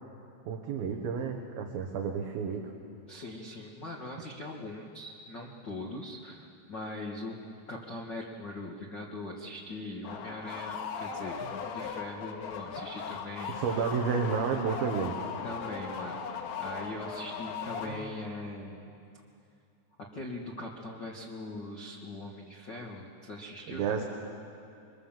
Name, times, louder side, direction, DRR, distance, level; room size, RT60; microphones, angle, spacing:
voice 1, 0.5-2.6 13.5-15.2 23.7-24.0, right 6 dB, 65° right, 2 dB, 2.9 m, -31 dB
voice 2, 3.1-7.4 7.7-13.8 15.4-16.2 16.6-18.8 20.0-24.0, left 2 dB, 55° left, -1 dB, 1.2 m, -41 dB
sound 1, 10.0-18.4, left 6 dB, 85° left, 4.0 m, -38 dB
25.0 x 24.0 x 7.4 m, 2.6 s
omnidirectional pair, 5.0 m